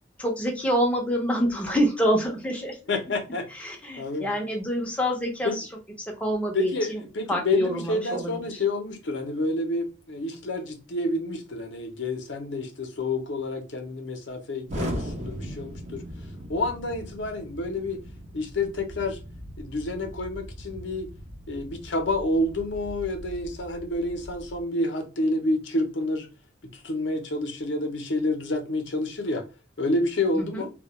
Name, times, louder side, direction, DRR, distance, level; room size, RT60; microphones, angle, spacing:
voice 1, 0.2-2.8 3.5-5.7 6.0-7.0 7.3-8.6 30.4-30.6, equal, 5° left, 0.5 m, -27 dB
voice 2, 2.9-3.5 4.0-4.3 5.4-5.6 6.5-16.0 16.5-18.0 18.3-19.2 19.6-21.1 21.5-26.3 26.8-29.4 29.8-30.7, left 2 dB, 65° left, 0.6 m, -28 dB
Explosion, 14.7-24.6, equal, 40° right, 0.6 m, -39 dB
2.3 x 2.1 x 2.8 m
head